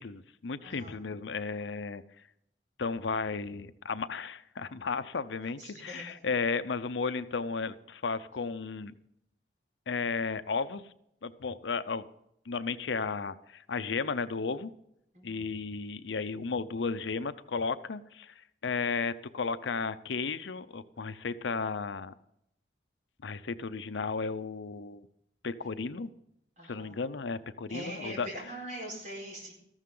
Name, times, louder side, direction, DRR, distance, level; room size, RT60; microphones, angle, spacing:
voice 1, 0.0-2.0 2.8-8.9 9.9-10.8 11.2-12.1 12.5-14.7 15.2-18.3 18.6-22.1 23.2-25.1 25.4-26.1 26.7-28.3, left 4 dB, 85° left, 12 dB, 0.6 m, -34 dB
voice 2, 0.6-0.9 5.6-6.3 15.1-15.5 26.6-26.9 27.7-29.5, right 1 dB, 40° right, -1 dB, 4.6 m, -42 dB
14.0 x 12.5 x 3.8 m, 0.78 s
head